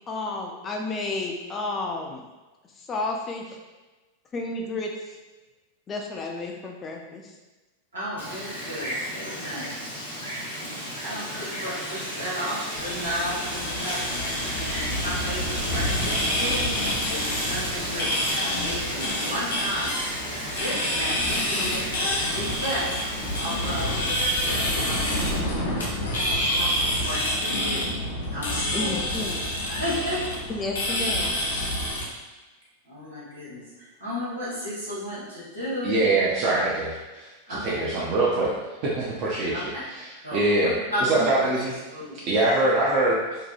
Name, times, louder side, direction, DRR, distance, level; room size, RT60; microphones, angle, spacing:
voice 1, 0.1-2.2 2.7-3.6 4.3-5.2 5.9-7.3 28.7-29.5 30.5-31.3, left 2 dB, 25° left, 1 dB, 0.4 m, -32 dB
voice 2, 7.9-9.7 10.6-14.0 14.5-16.7 17.1-19.9 20.2-23.0 23.4-25.2 26.4-27.9 28.3-29.0 29.6-30.4 31.0-31.1 32.8-36.0 37.5-37.9 39.5-39.8 40.2-41.5 41.9-42.2, equal, 75° right, -9 dB, 1.2 m, -33 dB
Wind, 8.2-25.4, equal, 85° left, 0.9 m, -33 dB
sound 1, 12.8-32.0, left 1 dB, 65° left, 0.7 m, -28 dB
voice 3, 35.8-38.5 38.8-39.7 40.3-40.7 41.1-41.7 42.3-43.4, right 2 dB, 40° right, -5 dB, 0.4 m, -23 dB
2.7 x 2.2 x 2.7 m, 1.2 s
figure-of-eight pair, 90°, 0 cm